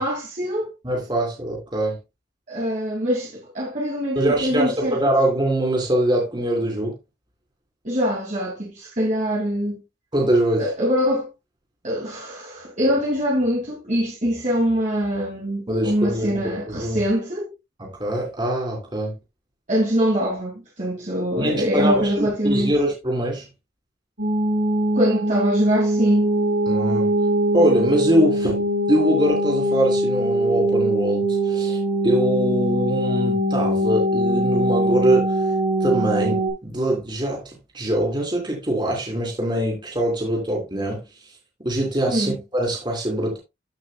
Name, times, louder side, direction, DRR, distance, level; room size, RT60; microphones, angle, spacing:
voice 1, 0.0-0.7 2.5-5.0 7.8-9.8 10.6-11.3 11.8-17.5 19.7-22.8 24.9-26.3 42.1-42.3, equal, 40° right, 2.5 m, -23 dB
voice 2, 0.8-2.0 4.2-6.9 10.1-10.6 15.7-17.0 17.8-19.1 21.4-23.4 26.7-27.1 27.5-28.6 28.9-35.5 35.8-37.4 37.7-41.0 41.6-43.4, right 1 dB, 25° right, 3.6 m, -23 dB
sound 1, 24.2-36.5, right 1 dB, 65° right, 5.6 m, -22 dB
14.5 x 6.1 x 2.3 m
head